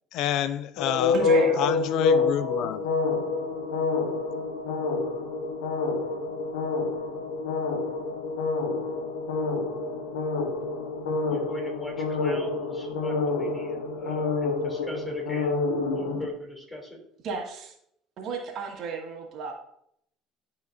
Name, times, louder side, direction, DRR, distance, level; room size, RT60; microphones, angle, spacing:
voice 1, 0.1-1.2 1.6-2.8, left 10 dB, 70° left, 0.4 m, -28 dB
sound 1, 0.8-16.3, left 4 dB, 90° left, 0.7 m, -27 dB
voice 2, 1.1-1.7 17.2-17.7 18.2-19.5, right 5 dB, 60° right, 2.0 m, -32 dB
voice 3, 11.3-15.6 15.9-17.0, left 1 dB, 10° left, 3.2 m, -39 dB
11.5 x 4.9 x 2.7 m
supercardioid pair, 75°, 0 cm